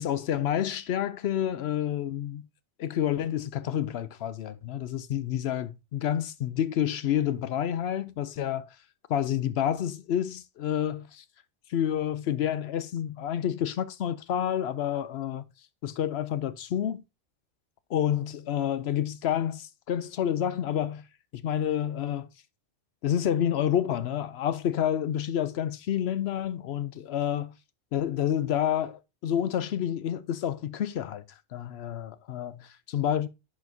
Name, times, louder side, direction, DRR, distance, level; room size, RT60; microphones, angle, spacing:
voice 1, 0.0-2.4 2.8-8.6 9.1-11.2 11.7-15.4 15.8-17.0 17.9-21.0 21.3-22.3 23.0-27.5 27.9-31.2 31.5-33.3, left 10 dB, 65° left, 0.8 m, -29 dB
10.5 x 4.3 x 2.7 m
omnidirectional pair, 1.2 m